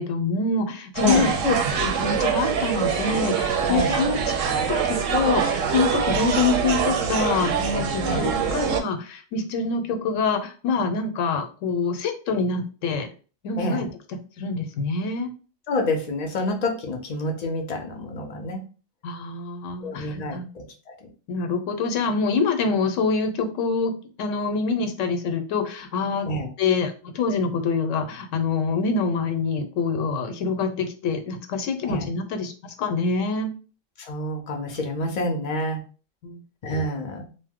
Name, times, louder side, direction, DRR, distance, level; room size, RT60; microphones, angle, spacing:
voice 1, 0.0-13.1 13.4-13.9 14.4-15.3 19.0-20.5 21.3-23.9 24.2-26.3 26.6-33.5 36.2-36.4, left 4 dB, 80° left, 6 dB, 1.0 m, -26 dB
sound 1, 0.9-8.8, right 6 dB, 85° right, 1.0 m, -24 dB
voice 2, 1.0-1.3 3.7-4.0 8.0-8.2 13.6-13.9 15.7-18.6 19.8-20.9 26.3-26.5 31.8-32.1 34.0-35.8 36.6-37.3, left 1 dB, 45° left, 3 dB, 0.6 m, -28 dB
2.8 x 2.0 x 3.5 m, 0.37 s
omnidirectional pair, 1.3 m